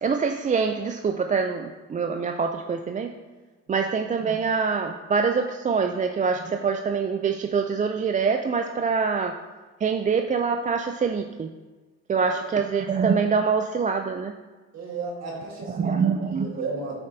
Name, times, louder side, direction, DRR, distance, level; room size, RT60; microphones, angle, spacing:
voice 1, 0.0-3.1 3.7-9.4 9.8-11.5 12.1-14.3 15.7-16.5, right 5 dB, 25° right, 5 dB, 0.4 m, -25 dB
voice 2, 14.7-16.9, right 3 dB, 60° right, -1 dB, 1.6 m, -33 dB
8.7 x 7.0 x 2.7 m, 1.3 s
cardioid pair, 90°, 30 cm